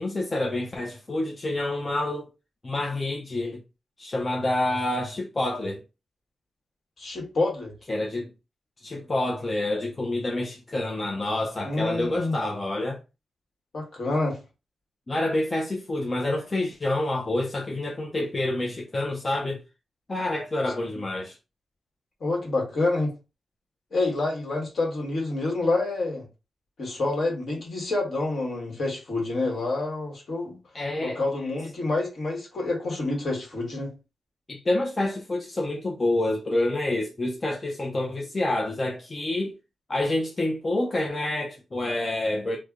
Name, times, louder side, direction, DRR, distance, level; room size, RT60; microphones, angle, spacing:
voice 1, 0.0-2.3 2.6-3.6 4.0-5.8 7.9-8.3 8.8-13.0 15.1-19.6 20.1-21.4 30.7-31.2 34.5-39.5 39.9-42.6, left 1 dB, 25° left, 0.5 m, -28 dB
voice 2, 7.0-7.7 11.6-12.4 13.7-14.4 22.2-23.1 23.9-26.2 26.8-30.6 31.0-33.9, left 2 dB, 50° left, 1.5 m, -27 dB
3.2 x 2.1 x 3.6 m
wide cardioid pair, 125°, 0 cm